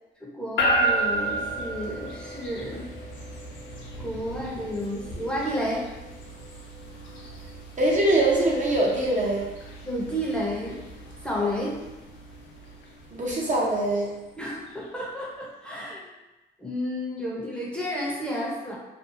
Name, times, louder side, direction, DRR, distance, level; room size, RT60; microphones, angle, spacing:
voice 1, 0.2-2.8 4.0-5.9 9.8-10.8 11.2-11.8 14.4-16.1 16.6-18.8, equal, 5° left, -5 dB, 0.7 m, -31 dB
sound 1, 0.6-14.8, right 1 dB, 75° left, 0.7 m, -33 dB
voice 2, 7.8-9.4 13.2-14.1, right 1 dB, 40° right, -4 dB, 0.6 m, -22 dB
2.6 x 2.3 x 2.6 m, 1.1 s
cardioid pair, 90°, 20 cm